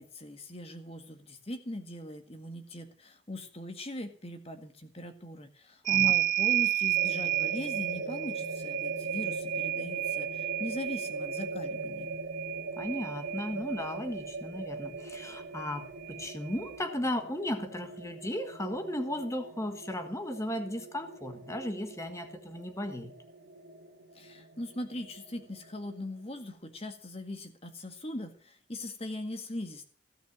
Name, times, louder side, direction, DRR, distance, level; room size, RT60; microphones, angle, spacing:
voice 1, 0.0-12.1 24.2-29.8, left 1 dB, 30° left, 7 dB, 1.9 m, -40 dB
sound 1, 5.9-14.0 15.2-15.3 15.6-16.7, right 15 dB, 40° right, 0.6 m, -32 dB
sound 2, 6.9-26.5, right 3 dB, 80° right, 2.6 m, -41 dB
voice 2, 12.8-23.1, left 1 dB, 15° left, 7 dB, 1.6 m, -35 dB
16.0 x 6.1 x 8.7 m, 0.43 s
head